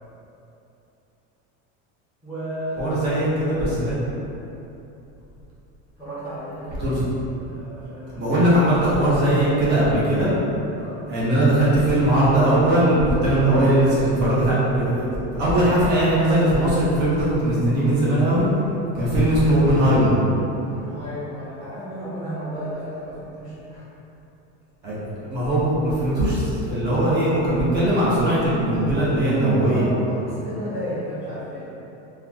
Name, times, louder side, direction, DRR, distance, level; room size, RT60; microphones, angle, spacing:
voice 1, 2.2-2.9 6.0-7.0 7.2-8.3 10.7-11.0 18.9-19.2 20.7-23.8 24.8-25.0 29.5-31.7, equal, 5° right, -14 dB, 0.9 m, -34 dB
voice 2, 2.8-3.9 6.8-7.0 8.2-10.3 11.1-18.4 18.9-20.2 24.8-29.8, right 1 dB, 30° right, -9 dB, 1.0 m, -19 dB
3.8 x 2.2 x 2.9 m, 2.9 s
cardioid pair, 170°, 33 cm